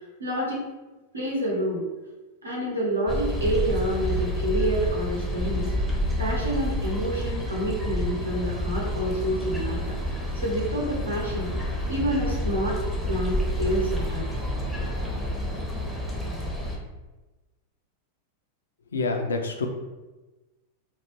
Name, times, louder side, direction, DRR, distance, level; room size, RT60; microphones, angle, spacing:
voice 1, 0.2-0.6 1.1-1.8 2.4-5.7 6.2-9.9 10.3-11.6 11.9-12.8 13.1-14.4, right 1 dB, 80° right, -3 dB, 0.7 m, -28 dB
sound 1, 3.1-16.8, equal, 5° left, 0.5 m, -29 dB
voice 2, 18.9-19.7, left 3 dB, 70° left, 4 dB, 0.3 m, -27 dB
2.2 x 2.1 x 3.0 m, 1.1 s
figure-of-eight pair, 90°, 0 cm